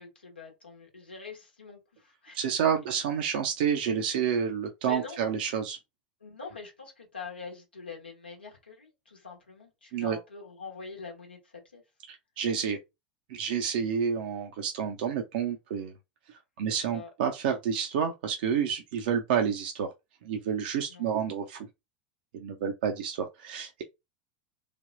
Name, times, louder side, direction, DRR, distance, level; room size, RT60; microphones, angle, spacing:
voice 1, 0.0-2.4 4.8-5.2 6.2-11.8 16.6-17.1 20.9-21.1, left 5 dB, 85° left, 1.0 m, -44 dB
voice 2, 2.3-5.8 9.9-10.2 12.1-12.8 13.3-15.9 16.6-19.9 20.2-21.7 22.3-23.8, right 7 dB, 60° right, 0.5 m, -29 dB
3.3 x 2.2 x 2.5 m
figure-of-eight pair, 80°, 5 cm